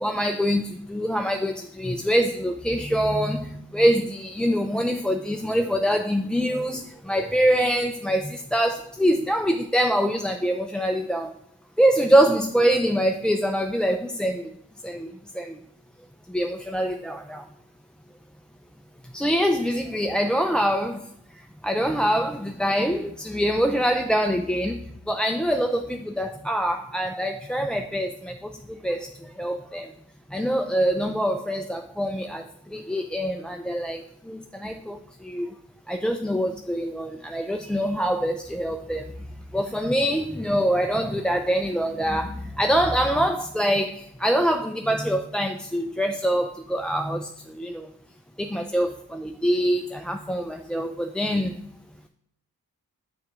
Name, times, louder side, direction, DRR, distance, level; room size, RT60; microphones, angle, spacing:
voice 1, 0.0-6.8 7.1-11.3 11.8-14.5 14.8-15.5 16.3-17.4 19.1-21.0 21.6-24.8 25.1-28.3 28.8-29.1 29.4-29.9 30.3-32.4 32.7-34.0 34.3-35.0 35.2-35.5 35.9-39.0 39.5-43.9 44.2-47.3 47.6-47.8 48.4-51.6, equal, ahead, 5 dB, 0.4 m, -24 dB
6.3 x 6.1 x 3.7 m, 0.71 s
cardioid pair, 55°, 37 cm